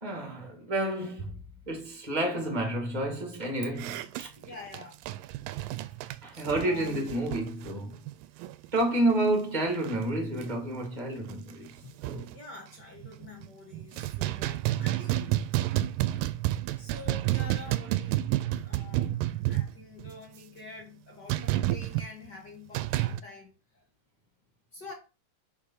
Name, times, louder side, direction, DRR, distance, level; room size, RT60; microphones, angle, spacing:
voice 1, 0.0-1.4 1.7-4.3 6.2-8.0 8.7-11.7 12.0-12.2, right 1 dB, 25° right, 1.0 m, -30 dB
sound 1, 3.8-8.8 9.1-9.3 9.7-10.0 10.4-10.5 10.9-11.0 11.3-12.4 13.0-13.5 13.7-20.2 21.3-22.1 22.7-23.2, right 15 dB, 85° right, 2.2 m, -30 dB
voice 2, 4.3-5.0 6.0-7.1 8.6-8.8 11.8-15.4 16.8-18.3 18.6-19.1 19.4-23.8 24.7-24.9, left 3 dB, 60° left, 1.1 m, -47 dB
5.2 x 5.0 x 5.5 m
omnidirectional pair, 4.0 m